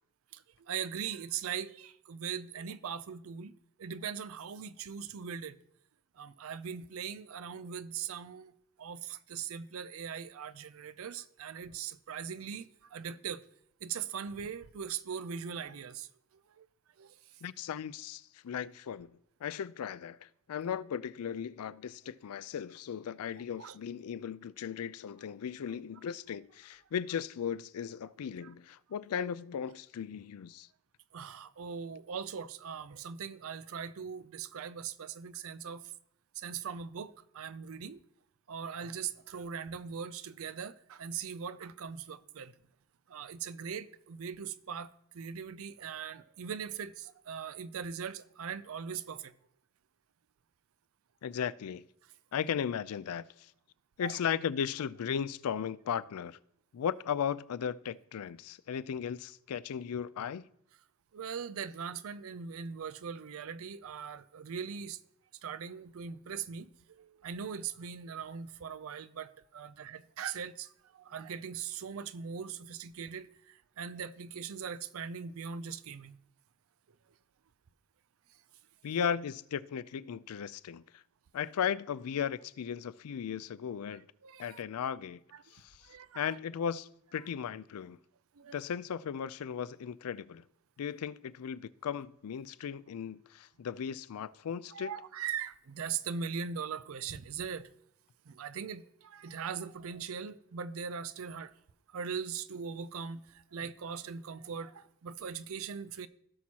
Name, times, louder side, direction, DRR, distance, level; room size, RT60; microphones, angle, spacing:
voice 1, 0.3-5.6 6.1-8.5 8.8-13.4 13.8-16.7 17.0-17.4 23.6-23.8 28.4-28.5 31.1-35.8 36.3-38.0 38.5-42.5 43.1-49.3 54.0-54.2 61.1-65.0 65.4-76.2 78.3-78.4 83.9-84.6 85.3-86.4 88.3-88.6 94.7-97.7 98.3-101.5 101.9-106.1, right 7 dB, 65° right, 0.5 m, -40 dB
voice 2, 17.4-19.1 19.4-30.7 51.2-51.8 52.3-53.5 54.0-56.4 56.7-60.4 78.8-81.0 81.3-84.1 84.4-85.2 85.5-85.8 86.1-88.0 88.5-90.4 90.8-94.9, left 8 dB, 75° left, 0.4 m, -36 dB
16.5 x 6.1 x 2.9 m
head